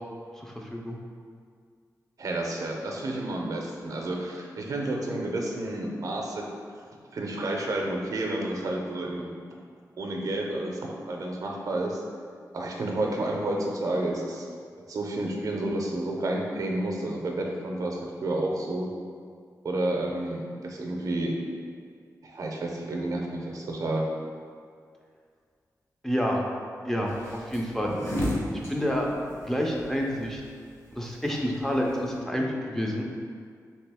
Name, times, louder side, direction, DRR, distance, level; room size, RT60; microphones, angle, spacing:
voice 1, 0.4-1.0 26.0-26.4 26.9-27.9 28.7-29.1 29.4-30.4 30.9-33.1, equal, 5° left, -2 dB, 0.3 m, -28 dB
voice 2, 2.2-6.4 7.1-9.3 10.0-12.0 12.5-14.5 14.9-18.9 19.6-21.4 22.2-24.0, right 1 dB, 60° right, 0 dB, 0.5 m, -30 dB
sound 1, 27.1-32.2, left 1 dB, 40° left, 0.7 m, -34 dB
3.0 x 2.7 x 3.4 m, 2.1 s
wide cardioid pair, 125°, 7 cm